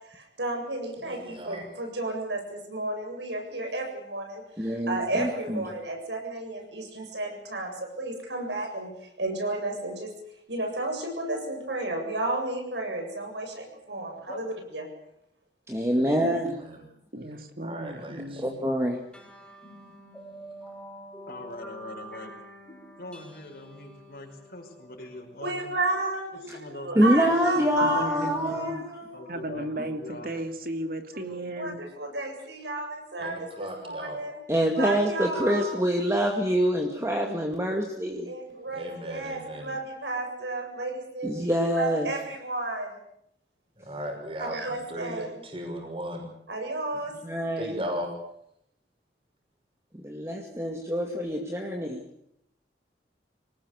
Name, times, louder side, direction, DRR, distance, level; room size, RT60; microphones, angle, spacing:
voice 1, 0.1-8.9 9.2-10.1 10.5-14.8 25.4-29.3 31.6-34.4 34.8-35.8 38.2-43.0 44.4-45.4 46.5-47.2, right 2 dB, 80° right, 3 dB, 7.7 m, -33 dB
voice 2, 1.0-1.6 15.9-16.8 17.6-18.4 33.2-34.2 38.7-39.7 43.8-46.3 47.6-48.1, equal, 30° right, 1 dB, 6.2 m, -37 dB
voice 3, 4.6-5.6 15.7-16.6 18.4-19.0 26.5-26.6 27.0-28.8 34.5-38.3 41.2-42.1 47.2-47.7 49.9-52.0, equal, 15° right, 1 dB, 2.2 m, -26 dB
voice 4, 13.9-14.4 21.3-22.3 23.0-25.7 26.3-26.9 27.2-28.3 29.1-30.3, left 1 dB, 55° left, 1 dB, 5.6 m, -42 dB
voice 5, 17.1-18.6 27.8-28.7 29.3-31.8, right 1 dB, 55° right, 6 dB, 2.6 m, -35 dB
sound 1, 19.1-26.0, equal, 5° left, 4.8 m, -47 dB
26.0 x 19.0 x 8.2 m, 0.77 s
head